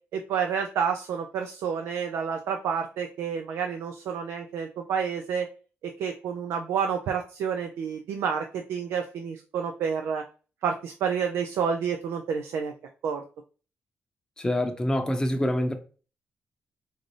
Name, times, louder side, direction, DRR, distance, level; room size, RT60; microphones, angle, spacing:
voice 1, 0.1-5.5 5.8-10.2 10.6-12.7 13.0-13.2, right 7 dB, 85° right, 0.4 m, -29 dB
voice 2, 14.4-15.8, left 1 dB, 15° left, 0.7 m, -26 dB
3.8 x 2.6 x 3.2 m
cardioid pair, 95°, 4 cm